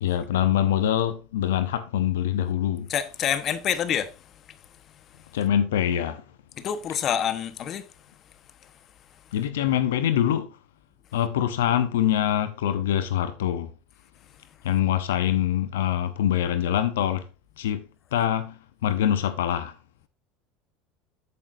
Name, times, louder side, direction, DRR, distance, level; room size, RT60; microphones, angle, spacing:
voice 1, 0.0-2.9 5.3-6.2 9.3-10.6 11.1-13.7 14.6-17.2 17.6-19.8, left 10 dB, 90° left, 0.8 m, -24 dB
voice 2, 2.9-5.3 6.6-7.9 8.6-8.7 9.1-9.2, left 9 dB, 45° left, 1.2 m, -29 dB
13.0 x 7.7 x 2.7 m
supercardioid pair, 100°, 0 cm